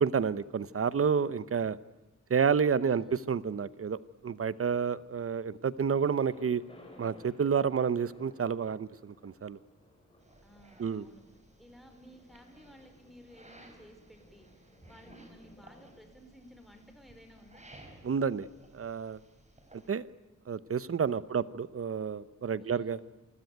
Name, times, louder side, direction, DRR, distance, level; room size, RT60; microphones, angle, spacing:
voice 1, 0.0-1.8 2.3-6.6 7.0-9.6 10.8-11.0 18.0-18.5 18.7-19.2 19.9-20.1 20.5-23.0, right 6 dB, 45° right, 17 dB, 0.9 m, -30 dB
Thunder, 5.9-17.7, left 1 dB, 20° left, 5.4 m, -59 dB
sound 1, 10.2-19.9, right 1 dB, 25° right, 4.8 m, -58 dB
voice 2, 10.4-11.2 11.6-14.5 14.8-17.6 21.3-21.5 22.6-23.0, equal, ahead, 5 dB, 4.9 m, -56 dB
27.5 x 21.5 x 9.3 m, 1.1 s
wide cardioid pair, 145°, 30 cm